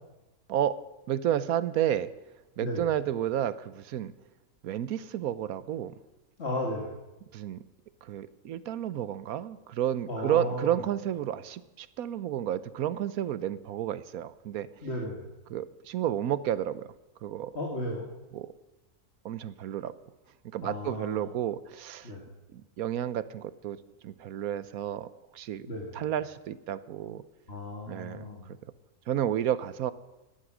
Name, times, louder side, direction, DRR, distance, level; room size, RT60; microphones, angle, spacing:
voice 1, 1.1-2.1 2.6-4.1 4.6-5.9 7.3-7.6 8.0-14.7 15.5-16.9 17.2-17.5 18.3-18.5 19.2-19.9 20.4-22.1 22.5-23.8 24.0-25.7 25.9-27.2 27.9-28.3 29.1-29.9, right 11 dB, 80° right, 15 dB, 1.2 m, -31 dB
voice 2, 6.4-7.0 10.1-10.8 14.8-15.3 17.5-18.1 20.6-21.2 22.0-22.2 25.7-25.9 27.5-28.5, left 1 dB, 45° left, -1 dB, 2.5 m, -34 dB
17.5 x 11.5 x 6.1 m, 1.0 s
omnidirectional pair, 1.5 m